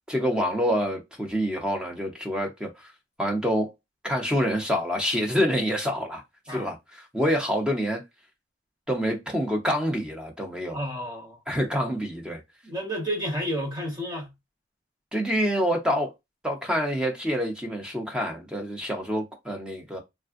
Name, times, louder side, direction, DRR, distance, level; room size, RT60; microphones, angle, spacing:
voice 1, 0.1-2.7 3.2-3.7 4.0-6.2 6.5-8.0 8.9-10.8 11.5-12.4 15.1-16.1 16.4-20.0, equal, 5° right, 0.7 m, -27 dB
voice 2, 10.7-11.4 12.6-14.3, equal, 20° right, 1.0 m, -31 dB
3.4 x 2.2 x 2.5 m
head